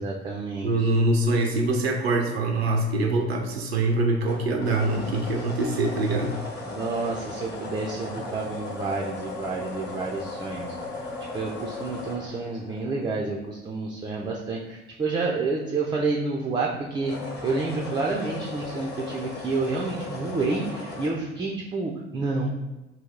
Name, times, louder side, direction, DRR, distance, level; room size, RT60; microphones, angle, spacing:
voice 1, 0.0-0.9 6.7-10.7 11.3-17.1 17.4-22.5, right 3 dB, 15° right, -1 dB, 0.4 m, -29 dB
voice 2, 0.6-6.3, right 2 dB, 80° right, 3 dB, 0.5 m, -24 dB
sound 1, 4.2-13.4 16.9-21.1, left 3 dB, 35° left, 1.0 m, -37 dB
2.8 x 2.7 x 3.7 m, 1.0 s
figure-of-eight pair, 55°, 31 cm